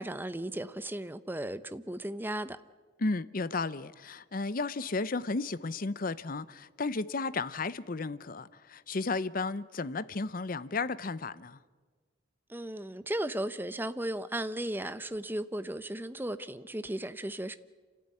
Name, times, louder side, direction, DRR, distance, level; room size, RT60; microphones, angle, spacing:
voice 1, 0.0-2.6 12.5-17.6, right 1 dB, 10° right, 0.7 m, -35 dB
voice 2, 3.0-11.6, left 3 dB, 45° left, 0.7 m, -33 dB
28.0 x 13.5 x 9.8 m
head